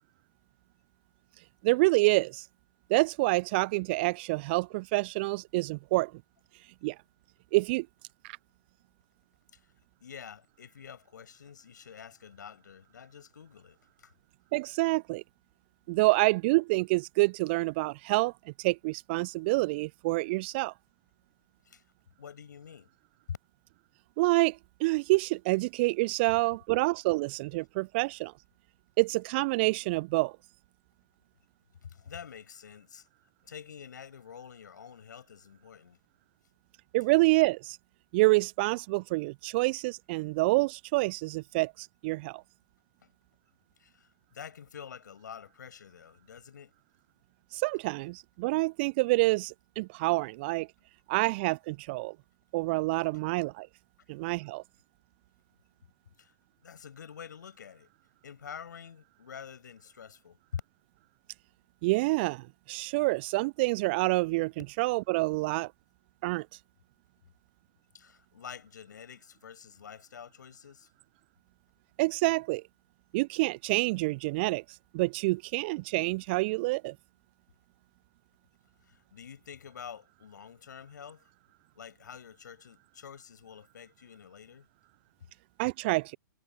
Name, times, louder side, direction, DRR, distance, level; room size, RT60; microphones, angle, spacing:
voice 1, 1.6-2.5 2.9-6.1 6.8-7.0 7.5-7.9 8.2-8.4 14.5-15.2 15.9-18.3 18.6-20.7 24.2-28.3 29.0-30.4 36.9-37.8 38.1-42.4 47.5-50.7 51.1-52.2 52.5-53.7 54.1-54.6 61.8-65.7 66.2-66.5 72.0-72.6 73.1-74.6 74.9-76.9 85.6-86.2, right 23 dB, 30° right, 0.4 m, -27 dB
voice 2, 10.0-14.1 21.7-21.8 22.2-22.9 23.3-23.4 31.8-33.1 33.4-36.0 43.8-46.7 56.2-56.4 56.6-57.9 58.2-60.6 67.9-70.9 78.8-81.3 81.8-84.7, left 7 dB, 60° left, 6.9 m, -47 dB
figure-of-eight pair, 115°, 11 cm